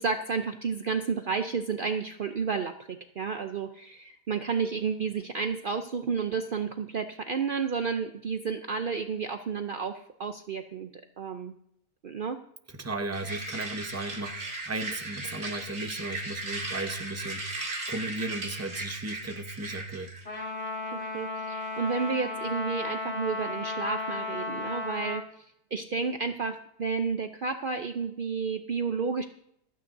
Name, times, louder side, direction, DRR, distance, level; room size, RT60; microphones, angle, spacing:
voice 1, 0.0-10.9 11.2-11.5 12.0-12.4 20.9-25.5 25.7-29.2, right 5 dB, 65° right, 7 dB, 0.5 m, -31 dB
voice 2, 12.7-20.1, right 2 dB, 15° right, 6 dB, 0.7 m, -36 dB
sound 1, 13.1-20.3, right 2 dB, 45° right, 2.6 m, -37 dB
Trumpet, 20.2-25.3, left 3 dB, 40° left, 3.2 m, -34 dB
27.0 x 9.5 x 2.7 m, 0.73 s
omnidirectional pair, 1.7 m